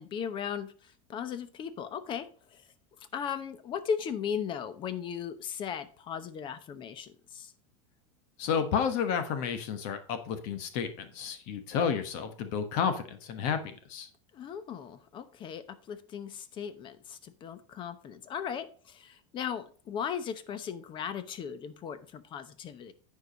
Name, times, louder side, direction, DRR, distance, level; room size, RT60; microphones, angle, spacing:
voice 1, 0.0-2.6 3.0-7.5 14.3-22.9, left 7 dB, 30° left, 13 dB, 0.8 m, -37 dB
voice 2, 8.4-14.1, left 7 dB, 55° left, 9 dB, 1.2 m, -31 dB
9.5 x 4.8 x 5.2 m, 0.42 s
supercardioid pair, 140°, 16 cm